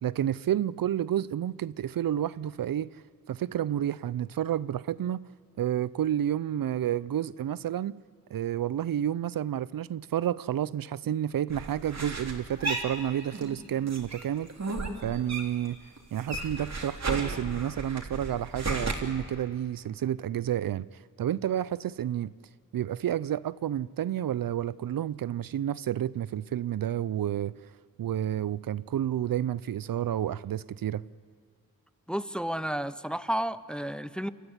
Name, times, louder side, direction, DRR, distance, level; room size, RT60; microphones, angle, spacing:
voice 1, 0.0-3.0 3.3-5.2 5.6-8.0 8.3-14.5 15.0-15.8 16.1-20.9 21.2-22.3 22.7-27.5 28.0-31.0, right 11 dB, 70° right, 0.5 m, -30 dB
sound 1, 11.5-13.6 13.9-15.7 16.0-18.9, right 2 dB, 50° right, 3.3 m, -34 dB
voice 2, 32.1-34.3, equal, 5° left, 0.6 m, -31 dB
28.0 x 14.0 x 9.8 m
wide cardioid pair, 75°, 35 cm